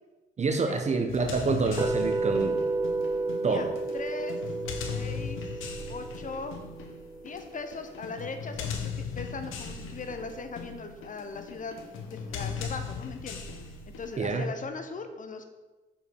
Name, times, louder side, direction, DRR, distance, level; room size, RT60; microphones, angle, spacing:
voice 1, 0.4-2.6 3.4-3.7 14.2-14.5, right 4 dB, 35° right, 6 dB, 0.9 m, -27 dB
sound 1, 1.1-14.2, left 6 dB, 85° left, 1.2 m, -38 dB
sound 2, 1.8-7.8, right 3 dB, 20° right, 0.5 m, -32 dB
voice 2, 3.9-4.4 4.9-6.6 7.2-11.8 12.1-13.4 13.9-15.5, left 4 dB, 40° left, 7 dB, 1.0 m, -39 dB
6.5 x 5.6 x 7.1 m, 1.2 s
cardioid pair, 90°, 20 cm